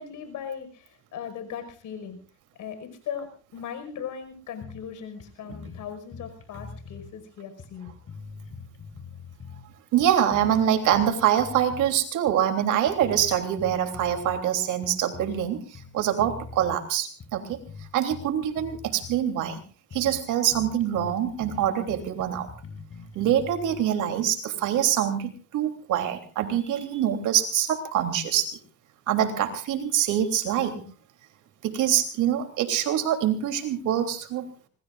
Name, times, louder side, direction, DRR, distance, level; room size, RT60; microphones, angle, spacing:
voice 1, 0.0-2.2 2.6-7.9, left 8 dB, 80° left, 8 dB, 5.4 m, -38 dB
sound 1, 4.6-4.9 5.2-5.3 5.5-7.1 7.6-9.7 10.0-11.9 12.3-12.5 12.9-14.5 14.8-15.5 15.7-16.8 17.2-19.3 19.6-19.7 19.9-20.2 20.5-23.8, left 5 dB, 50° left, 5.7 m, -43 dB
voice 2, 9.9-15.7 15.9-17.6 17.9-19.6 19.9-22.5 23.1-28.6 29.1-30.9 31.6-34.5, right 10 dB, 90° right, 7 dB, 3.2 m, -25 dB
25.5 x 20.5 x 2.5 m, 0.39 s
cardioid pair, 90°, 30 cm